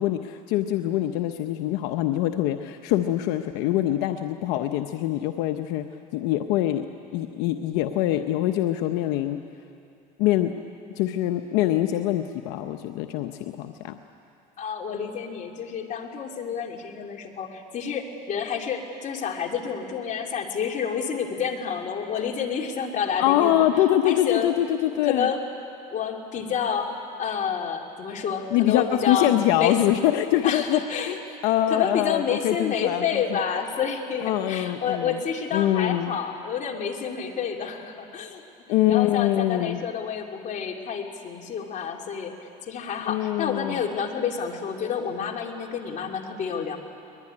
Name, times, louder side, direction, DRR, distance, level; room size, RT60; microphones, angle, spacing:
voice 1, 0.0-5.9 6.1-6.9 7.1-9.4 10.2-10.5 11.0-14.0 23.2-25.3 28.5-30.8 31.1-31.2 31.4-33.4 34.2-35.2 35.5-36.2 38.7-39.8 43.1-43.8, left 13 dB, 85° left, 7 dB, 0.9 m, -24 dB
voice 2, 14.6-23.6 24.0-24.5 25.0-25.4 25.9-26.9 27.2-29.8 30.4-31.2 31.7-38.4 38.9-46.8, left 7 dB, 50° left, 2 dB, 3.0 m, -29 dB
23.0 x 21.5 x 9.8 m, 2.6 s
cardioid pair, 105°, 17 cm